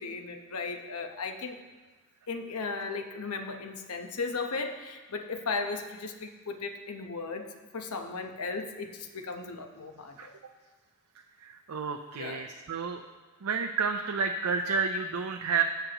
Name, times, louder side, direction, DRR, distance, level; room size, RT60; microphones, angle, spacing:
voice 1, 0.0-1.6 2.3-10.3 12.2-12.5, left 4 dB, 90° left, 5 dB, 1.0 m, -36 dB
voice 2, 11.4-13.0 13.4-15.6, right 5 dB, 85° right, 5 dB, 0.5 m, -30 dB
18.0 x 6.8 x 3.0 m, 1.3 s
head